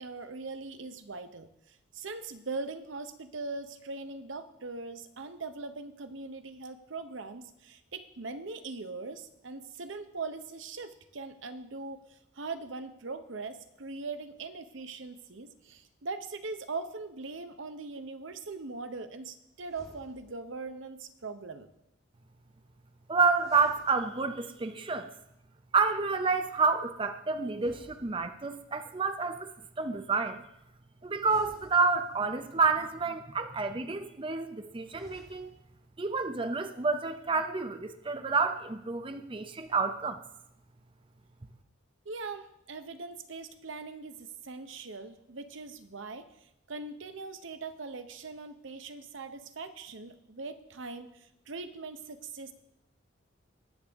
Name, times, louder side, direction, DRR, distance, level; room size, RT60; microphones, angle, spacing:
voice 1, 0.0-21.7 42.0-52.5, right 3 dB, 70° right, 9 dB, 0.8 m, -41 dB
sound 1, 19.6-20.6 23.3-24.6 27.5-28.7 31.2-32.4 34.8-35.7, equal, 15° left, 1.8 m, -56 dB
voice 2, 23.1-25.1 25.7-29.5 29.8-30.4 31.0-35.5 36.0-40.2, right 4 dB, 25° right, 8 dB, 0.5 m, -29 dB
20.0 x 6.9 x 3.5 m, 0.83 s
head